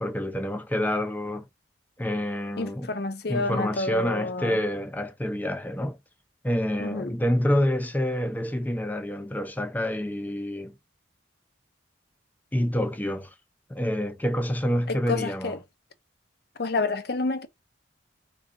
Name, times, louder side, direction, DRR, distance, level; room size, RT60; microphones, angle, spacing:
voice 1, 0.0-1.5 2.0-2.9 3.3-6.0 6.4-10.7 12.5-13.3 13.7-15.5, left 1 dB, 10° left, 0.6 m, -27 dB
voice 2, 2.6-4.6 6.8-7.2 14.9-15.6 16.6-17.5, left 3 dB, 55° left, 0.7 m, -29 dB
4.8 x 2.5 x 3.6 m
head